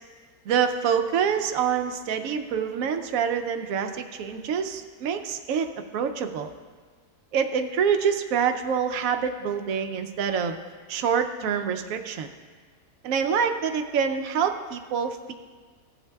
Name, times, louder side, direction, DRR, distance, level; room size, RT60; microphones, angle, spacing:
voice 1, 0.5-5.7 5.9-6.5 7.3-10.6 10.9-12.3 13.0-15.3, right 7 dB, 70° right, 6 dB, 1.0 m, -26 dB
15.5 x 8.3 x 2.3 m, 1.6 s
omnidirectional pair, 1.6 m